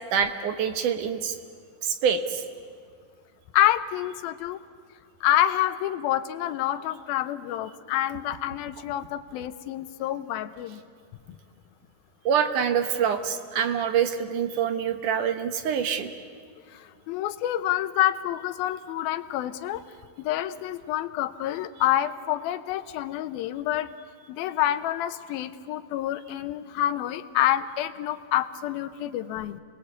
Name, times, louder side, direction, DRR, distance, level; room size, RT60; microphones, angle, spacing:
voice 1, 0.1-1.4 1.8-2.4 12.3-16.1, right 7 dB, 65° right, 8 dB, 2.5 m, -25 dB
voice 2, 3.5-4.6 5.2-10.8 16.7-19.8 20.2-23.9 24.3-29.6, left 12 dB, 80° left, 12 dB, 2.6 m, -27 dB
29.5 x 20.5 x 8.2 m, 2.1 s
omnidirectional pair, 4.4 m